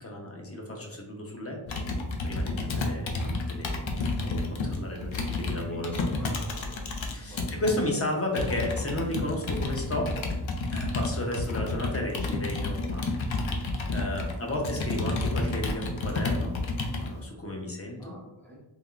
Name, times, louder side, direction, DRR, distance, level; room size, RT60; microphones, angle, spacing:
voice 1, 0.0-1.8 2.2-6.4 7.0-10.1 10.7-13.0 13.5-16.5 16.9-18.1, left 1 dB, 30° left, 1 dB, 0.7 m, -33 dB
Computer keyboard, 1.7-7.8 8.4-17.1, left 2 dB, 70° left, 0.6 m, -30 dB
voice 2, 4.9-6.9 7.2-7.7 18.0-18.6, right 1 dB, 5° left, -4 dB, 1.1 m, -47 dB
3.4 x 2.3 x 2.4 m, 1.0 s
wide cardioid pair, 55°, 49 cm